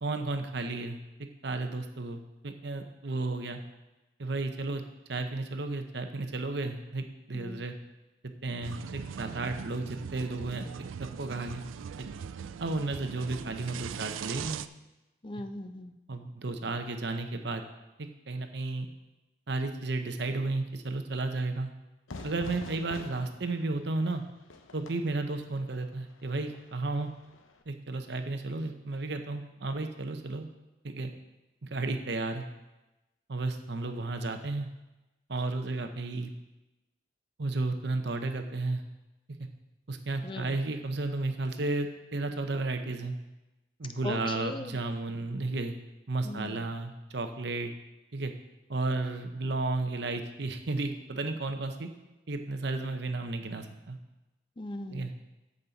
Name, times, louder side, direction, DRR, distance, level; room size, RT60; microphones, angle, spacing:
voice 1, 0.0-1.0 1.4-3.6 4.2-4.8 5.1-7.7 8.4-11.7 12.0-12.1 12.6-14.6 16.1-17.6 18.0-18.9 19.5-21.7 22.2-24.2 24.7-27.1 27.7-30.5 30.8-31.1 31.6-32.5 33.3-34.7 35.3-36.3 37.4-38.8 39.9-43.2 43.8-45.7 46.1-47.7 48.1-48.3 48.7-51.9 52.3-54.0 54.9-55.1, right 2 dB, 60° right, 7 dB, 0.8 m, -33 dB
voice 2, 7.3-7.6 15.2-16.0 40.2-40.6 44.0-44.8 46.2-46.7 54.6-55.1, left 1 dB, 25° left, 9 dB, 0.5 m, -39 dB
sound 1, 8.6-14.7, right 7 dB, 80° right, 0.3 m, -40 dB
Fire / Fireworks, 22.1-27.6, left 2 dB, 85° left, 0.8 m, -47 dB
13.5 x 5.4 x 4.1 m, 1.0 s
head